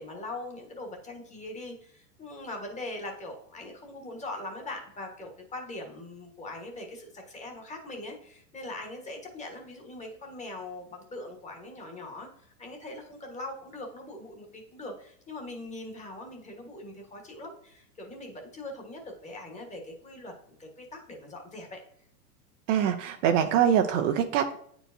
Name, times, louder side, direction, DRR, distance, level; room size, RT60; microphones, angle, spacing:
voice 1, 0.0-21.8, left 2 dB, 15° left, 1 dB, 1.3 m, -41 dB
voice 2, 22.7-24.6, right 9 dB, 50° right, 6 dB, 0.7 m, -24 dB
8.8 x 4.6 x 2.7 m, 0.65 s
hypercardioid pair, 130°, 49 cm